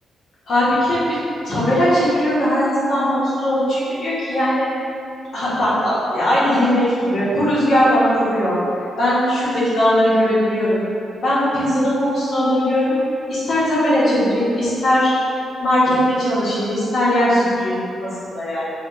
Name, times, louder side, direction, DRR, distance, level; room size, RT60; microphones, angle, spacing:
voice 1, 0.5-1.2 1.4-4.7 5.3-8.6 9.0-10.8 11.2-12.9 13.3-15.1 15.6-18.7, equal, 65° left, -9 dB, 1.2 m, -19 dB
4.1 x 2.4 x 3.0 m, 2.7 s
cardioid pair, 105°, 0 cm